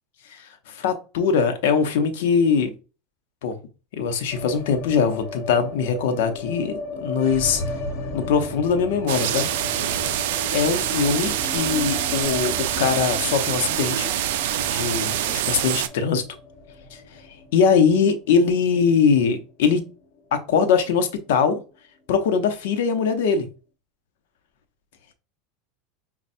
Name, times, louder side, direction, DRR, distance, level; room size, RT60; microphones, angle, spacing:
voice 1, 0.2-2.7 3.4-3.6 3.9-7.6 8.1-9.5 10.5-14.1 14.7-16.2 16.9-17.0 17.5-19.9 20.3-21.6 22.1-23.5, left 6 dB, 80° left, 0.8 m, -22 dB
sound 1, 4.3-20.4 20.7-20.8 21.0-21.7, left 2 dB, 65° left, 1.1 m, -36 dB
sound 2, 9.1-15.9, right 12 dB, 75° right, 0.4 m, -25 dB
5.4 x 2.3 x 2.6 m
supercardioid pair, 110°, 0 cm